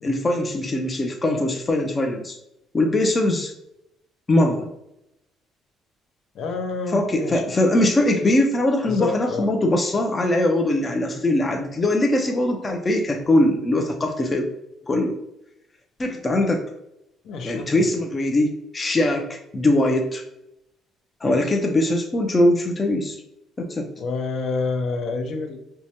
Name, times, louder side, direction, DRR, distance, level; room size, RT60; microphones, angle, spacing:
voice 1, 0.0-2.3 2.7-3.5 4.3-4.7 6.9-14.5 14.9-15.2 16.0-16.7 17.4-20.2 21.2-23.2 23.6-23.9, left 1 dB, 20° left, 2 dB, 0.4 m, -21 dB
voice 2, 6.3-7.4 8.9-9.5 17.2-17.9 21.2-21.4 24.0-25.6, left 3 dB, 60° left, 4 dB, 0.6 m, -28 dB
4.5 x 2.1 x 2.8 m, 0.85 s
cardioid pair, 125°, 0 cm